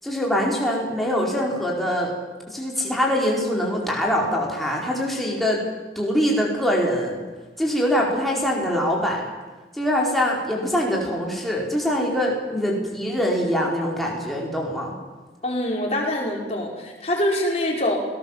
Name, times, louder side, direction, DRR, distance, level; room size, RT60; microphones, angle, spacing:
voice 1, 0.0-2.1 2.5-5.6 5.9-7.2 7.6-9.3 9.7-14.9, equal, ahead, -2 dB, 4.6 m, -23 dB
voice 2, 15.4-18.0, left 1 dB, 35° left, -1 dB, 5.0 m, -24 dB
27.5 x 18.5 x 7.5 m, 1.3 s
head